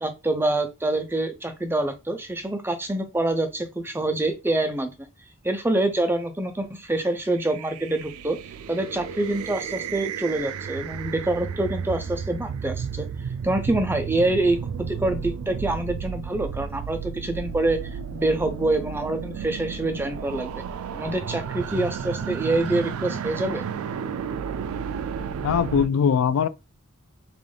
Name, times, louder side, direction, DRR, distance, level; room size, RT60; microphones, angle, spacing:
voice 1, 0.0-4.9 5.4-8.4 8.7-13.1 13.4-20.6 20.9-23.6, right 2 dB, 10° right, 0.4 m, -26 dB
sound 1, 7.3-25.9, right 7 dB, 80° right, 0.3 m, -33 dB
voice 2, 25.4-26.5, left 7 dB, 70° left, 0.3 m, -21 dB
3.4 x 2.4 x 3.6 m
head